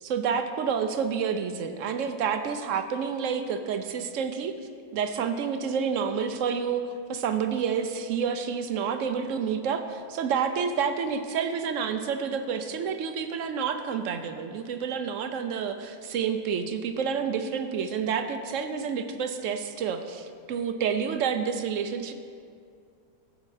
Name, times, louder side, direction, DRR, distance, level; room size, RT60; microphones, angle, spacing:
voice 1, 0.0-4.5 4.9-22.1, right 6 dB, 65° right, 8 dB, 0.8 m, -29 dB
12.5 x 8.1 x 3.3 m, 2.3 s
omnidirectional pair, 1.6 m